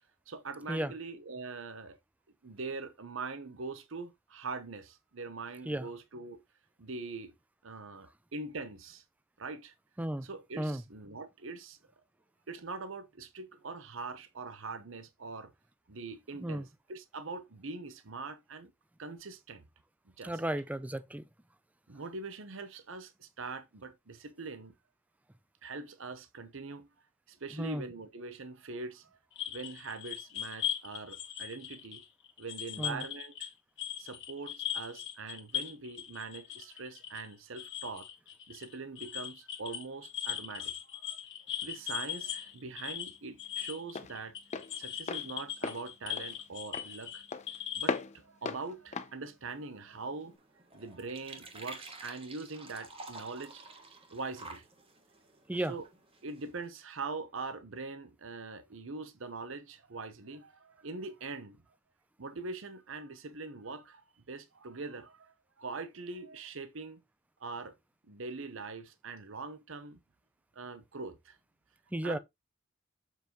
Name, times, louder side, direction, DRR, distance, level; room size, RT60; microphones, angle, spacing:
voice 1, 0.3-2.0 2.4-6.4 6.8-7.3 7.6-9.0 9.4-9.7 10.2-11.8 12.5-15.5 15.9-18.7 19.0-19.6 20.2-20.4 21.9-24.7 25.6-26.9 27.3-29.2 29.5-32.0 32.4-33.5 34.0-38.1 38.5-41.2 41.5-44.3 44.8-47.2 47.7-50.3 50.7-53.8 54.1-54.7 55.7-55.8 56.2-61.6 62.2-64.0 64.3-67.0 67.4-67.7 68.0-70.0 70.5-71.4 72.0-72.2, right 3 dB, 65° right, 0.9 m, -42 dB
voice 2, 20.2-21.3 27.5-27.8 32.8-33.0 55.5-55.7 71.9-72.2, right 1 dB, 5° right, 0.4 m, -34 dB
sound 1, 29.3-33.5 33.8-48.0, left 11 dB, 60° left, 1.4 m, -39 dB
Walk footsteps, 41.7-50.4, left 4 dB, 35° left, 0.7 m, -40 dB
sound 2, 49.5-56.7, right 3 dB, 25° right, 1.5 m, -51 dB
7.4 x 5.4 x 2.9 m
head